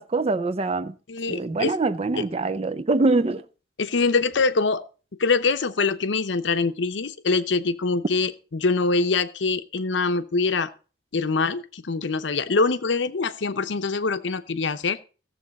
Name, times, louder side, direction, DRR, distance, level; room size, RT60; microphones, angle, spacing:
voice 1, 0.0-0.9 1.3-3.5, right 3 dB, 35° right, 0.4 m, -24 dB
voice 2, 1.1-1.7 2.2-2.3 3.8-4.8 5.2-10.7 11.1-15.0, left 4 dB, 85° left, 0.7 m, -24 dB
15.5 x 7.2 x 4.1 m
head